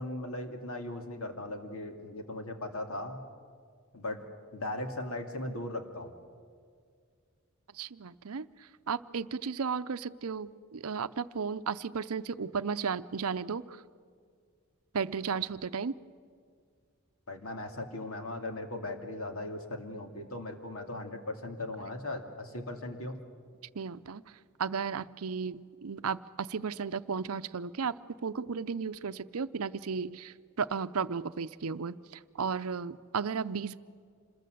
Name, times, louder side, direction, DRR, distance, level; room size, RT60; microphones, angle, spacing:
voice 1, 0.0-3.2 3.9-4.2 4.5-6.1 17.3-23.2, left 1 dB, 70° left, 5 dB, 2.5 m, -38 dB
voice 2, 7.7-8.5 8.9-13.8 14.9-15.9 23.7-24.2 24.6-28.0 28.2-33.8, right 5 dB, 75° right, 13 dB, 0.6 m, -34 dB
27.0 x 21.0 x 7.8 m, 2.1 s
head